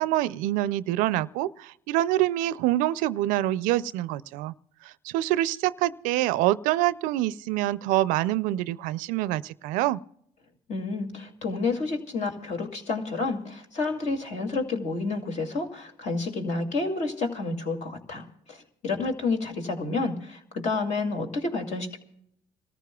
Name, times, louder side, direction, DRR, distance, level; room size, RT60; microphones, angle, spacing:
voice 1, 0.0-4.5 4.8-10.0, right 15 dB, 90° right, 0.4 m, -26 dB
voice 2, 10.7-22.0, left 3 dB, 60° left, 2.4 m, -30 dB
27.5 x 14.0 x 2.3 m
cardioid pair, 95°, 13 cm